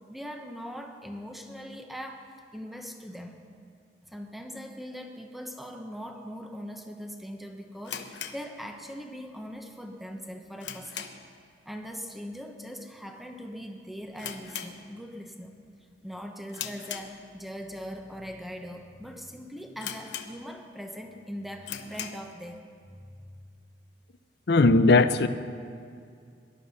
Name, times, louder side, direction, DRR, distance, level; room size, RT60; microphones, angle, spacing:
voice 1, 0.1-2.2 2.5-3.4 4.1-11.1 11.6-15.5 16.0-22.6 23.0-23.1, equal, ahead, 4 dB, 1.1 m, -41 dB
sound 1, 7.8-9.2 9.5-9.6 10.1-11.4 11.7-12.0 12.3-12.4 13.1-13.4 13.6-13.7 14.1-15.3 15.7-16.0 16.5-17.6 18.2-18.3 18.9-19.0 19.2-19.3 19.8-20.7 21.1-21.2 21.6-22.3, left 8 dB, 90° left, 1.0 m, -40 dB
voice 2, 24.5-25.3, left 3 dB, 65° left, 12 dB, 0.6 m, -18 dB
19.5 x 11.5 x 5.6 m, 2.3 s
head